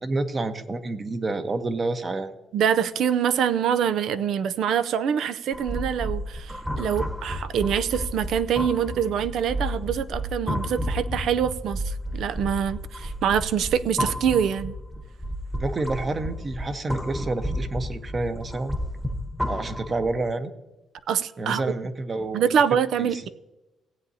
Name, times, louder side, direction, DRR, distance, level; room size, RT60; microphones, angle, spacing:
voice 1, 0.0-2.3 15.6-18.8 19.5-20.5 21.4-22.5 23.0-23.3, right 2 dB, 35° right, 1.0 m, -29 dB
voice 2, 2.5-14.7 21.1-21.6 22.3-23.3, right 8 dB, 75° right, 0.5 m, -25 dB
sound 1, 5.5-20.2, equal, 5° right, 1.1 m, -32 dB
17.5 x 8.2 x 2.8 m
cardioid pair, 90°, 0 cm